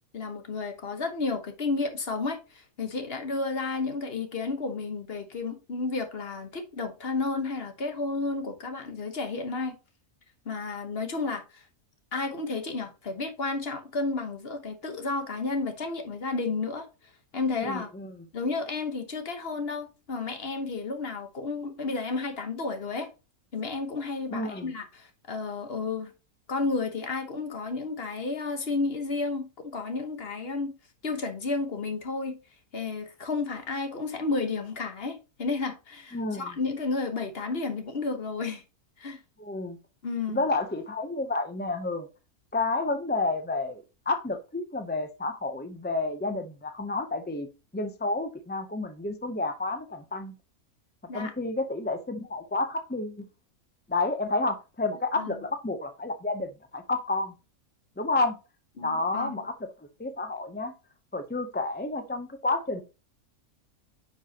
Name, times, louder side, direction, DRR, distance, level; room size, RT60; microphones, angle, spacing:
voice 1, 0.1-9.7 10.4-11.6 12.1-16.9 17.3-17.9 18.3-23.1 23.5-26.1 26.5-30.7 31.0-32.4 32.7-38.6 39.0-39.2 40.0-40.5 51.1-51.3 55.2-55.5 58.8-59.3, left 3 dB, 45° left, 1.3 m, -32 dB
voice 2, 17.6-18.1 24.3-24.7 36.1-36.5 39.4-39.8 40.3-42.1 42.5-47.5 47.7-50.3 51.1-53.3 53.9-57.3 58.0-58.4 58.8-59.7 60.0-60.7 61.1-62.8, left 2 dB, 15° left, 0.3 m, -30 dB
9.6 x 5.3 x 2.9 m
omnidirectional pair, 1.5 m